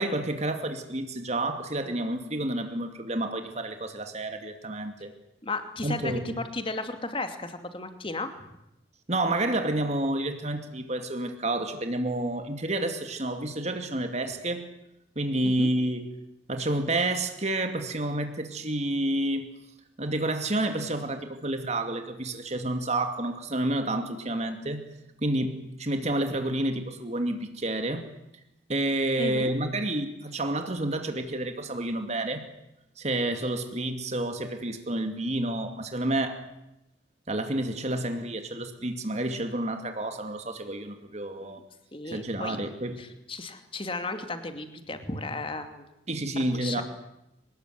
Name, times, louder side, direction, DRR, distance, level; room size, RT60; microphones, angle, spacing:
voice 1, 0.0-5.1 5.8-6.3 9.1-14.7 15.2-16.1 16.5-19.5 20.0-24.8 25.2-28.1 28.7-32.4 33.0-36.4 37.3-41.6 42.0-43.0 46.1-46.8, right 1 dB, 35° right, 7 dB, 2.5 m, -29 dB
voice 2, 5.4-8.3 15.4-15.7 29.2-29.6 41.4-41.6 41.9-42.6 43.0-45.8 46.5-46.8, left 2 dB, 30° left, 8 dB, 2.6 m, -34 dB
25.5 x 20.0 x 9.5 m, 0.89 s
head